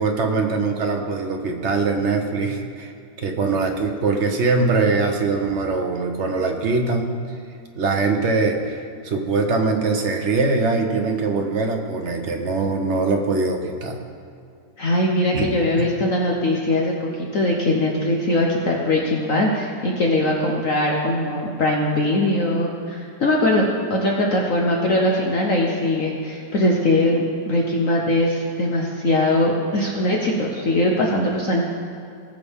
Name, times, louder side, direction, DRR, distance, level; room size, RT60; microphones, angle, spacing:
voice 1, 0.0-2.9 3.2-7.1 7.7-14.0 15.3-15.5, right 3 dB, 50° right, 3 dB, 1.0 m, -22 dB
voice 2, 14.8-31.6, left 1 dB, 55° left, -1 dB, 1.2 m, -21 dB
19.0 x 6.6 x 3.6 m, 2.4 s
omnidirectional pair, 1.9 m